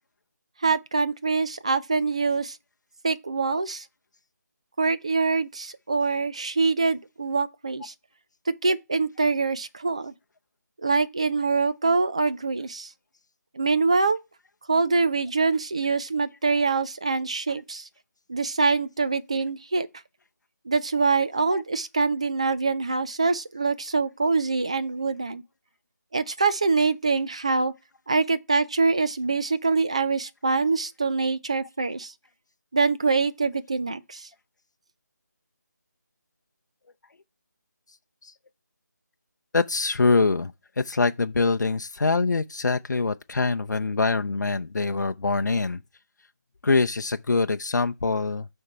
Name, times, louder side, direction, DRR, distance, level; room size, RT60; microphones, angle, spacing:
voice 1, 0.6-2.6 3.0-3.9 4.8-7.9 8.6-10.1 10.8-12.9 13.5-14.2 14.7-17.9 18.3-19.9 20.7-25.4 26.1-27.7 28.1-32.1 32.7-34.3, right 4 dB, 20° right, 0.4 m, -24 dB
voice 2, 39.5-45.8 46.6-48.5, left 3 dB, 75° left, 0.6 m, -24 dB
6.6 x 4.4 x 4.5 m
figure-of-eight pair, 175°, 10 cm